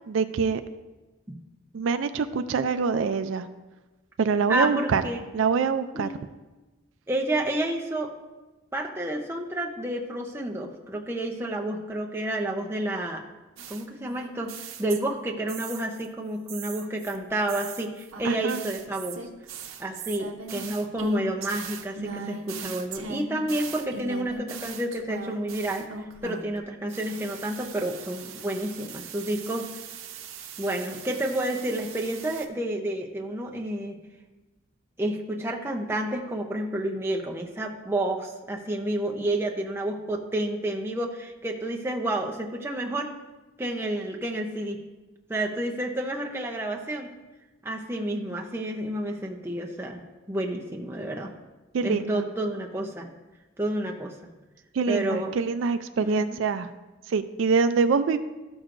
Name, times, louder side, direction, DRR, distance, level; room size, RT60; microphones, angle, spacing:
voice 1, 0.1-0.6 1.7-3.5 4.2-5.0 5.3-6.1 18.2-18.6 51.7-52.3 54.7-56.7 57.1-58.2, right 5 dB, 70° right, 10 dB, 0.4 m, -25 dB
voice 2, 4.5-5.2 5.9-6.1 7.1-8.1 8.7-13.2 13.7-14.5 14.8-19.2 19.8-25.9 26.2-29.7 30.6-34.0 35.0-43.1 43.6-44.8 45.3-47.1 47.6-50.0 50.3-51.3 51.8-53.1 53.6-54.1 54.9-55.3 56.0-56.4, right 1 dB, 10° right, 0 dB, 0.6 m, -30 dB
sound 1, 13.6-16.1 16.5-26.6 26.9-32.5, right 5 dB, 85° right, 0.7 m, -40 dB
13.0 x 6.2 x 2.5 m, 1.2 s
head